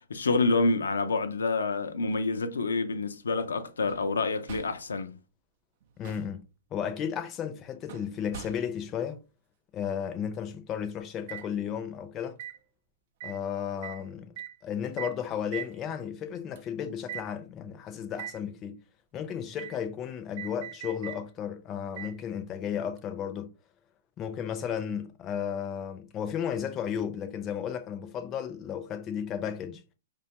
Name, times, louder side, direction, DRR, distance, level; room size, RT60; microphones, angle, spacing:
voice 1, 0.1-5.2, left 3 dB, 85° left, 0.5 m, -27 dB
sound 1, 3.9-4.2 4.5-4.9 5.8-6.4 7.9-8.9 11.3-11.5 12.4-12.6 13.2-13.4 13.8-14.0 14.4-14.6 15.0-15.2 15.5-15.8 16.6-16.7 17.1-17.3 18.1-18.4 19.6-19.8 20.4-21.2 22.0-22.2 23.0-23.1, right 10 dB, 60° right, 0.4 m, -41 dB
voice 2, 6.0-6.4 6.7-9.2 9.7-12.4 13.2-14.3 14.6-18.8 19.1-23.5 24.2-29.8, left 8 dB, 30° left, 0.6 m, -34 dB
4.8 x 2.2 x 2.9 m
hypercardioid pair, 125°, 0 cm